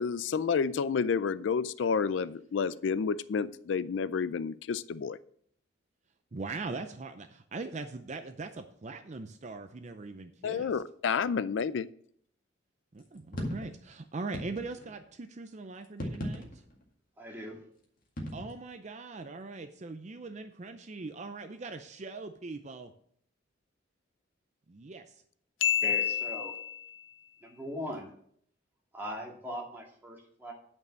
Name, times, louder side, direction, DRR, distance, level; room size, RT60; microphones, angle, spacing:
voice 1, 0.0-5.2 10.4-11.9 25.6-26.5, left 6 dB, 75° left, 17 dB, 0.4 m, -29 dB
voice 2, 6.3-10.7 12.9-16.5 18.3-22.9 24.7-25.2, right 3 dB, 40° right, 8 dB, 0.5 m, -41 dB
sound 1, 13.0-13.7 14.3-15.0 15.8-16.8 18.2-18.5, equal, 45° left, 2.1 m, -37 dB
voice 3, 17.2-17.6 25.8-26.5 27.4-28.1 28.9-30.5, equal, 10° right, -2 dB, 2.1 m, -40 dB
9.3 x 5.4 x 6.3 m, 0.63 s
head